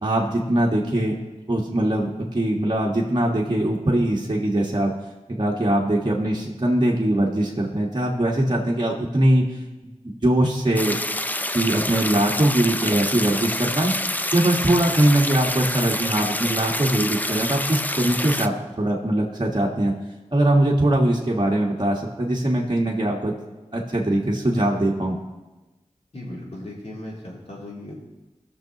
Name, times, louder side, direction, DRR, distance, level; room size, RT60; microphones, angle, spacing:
voice 1, 0.0-1.2 1.5-4.9 5.3-9.5 10.0-11.0 11.5-13.9 14.3-19.9 20.3-23.3 23.7-25.2, right 1 dB, 35° right, -3 dB, 1.5 m, -21 dB
sound 1, 10.8-18.5, left 1 dB, 15° left, 0.4 m, -27 dB
voice 2, 26.1-27.9, left 1 dB, 60° left, -4 dB, 3.1 m, -37 dB
19.0 x 6.6 x 3.0 m, 1.1 s
wide cardioid pair, 50°, 12 cm